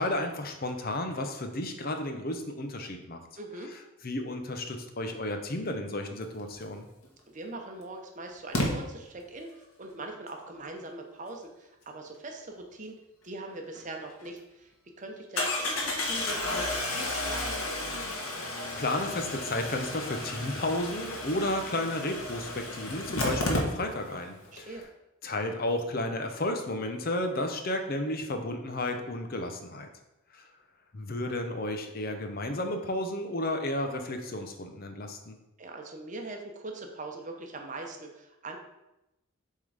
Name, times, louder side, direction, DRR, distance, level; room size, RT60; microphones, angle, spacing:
voice 1, 0.0-3.2 4.0-6.9 18.4-24.8 25.2-29.9 30.3-30.4 30.9-35.4, left 1 dB, 45° left, 5 dB, 0.7 m, -32 dB
voice 2, 3.4-3.7 7.3-13.0 13.2-14.7 15.0-17.6 24.5-24.8 35.6-38.6, right 2 dB, 35° right, 3 dB, 0.8 m, -41 dB
Engine starting, 7.0-7.1 8.5-8.7 13.7-13.8 14.2-14.3 15.4-24.2 24.4-24.5 24.7-24.8, left 2 dB, 85° left, 1.5 m, -32 dB
7.5 x 3.7 x 5.0 m, 0.94 s
head